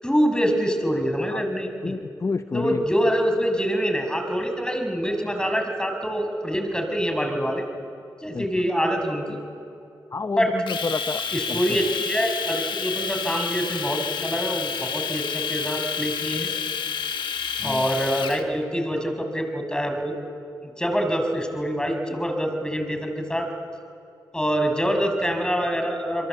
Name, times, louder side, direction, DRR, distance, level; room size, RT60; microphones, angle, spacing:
voice 1, 0.0-1.9 2.5-7.6 8.2-9.4 10.4-10.5 11.3-16.5 17.6-20.1 20.8-23.5 24.3-26.3, equal, 10° left, 5 dB, 6.1 m, -25 dB
voice 2, 1.8-2.8 8.3-8.7 10.1-11.2 11.5-11.8 17.6-17.9, left 4 dB, 35° left, 11 dB, 0.7 m, -29 dB
Domestic sounds home sounds, 10.7-18.4, left 6 dB, 70° left, 1.6 m, -29 dB
28.5 x 22.5 x 8.2 m, 2.7 s
supercardioid pair, 40°, 9 cm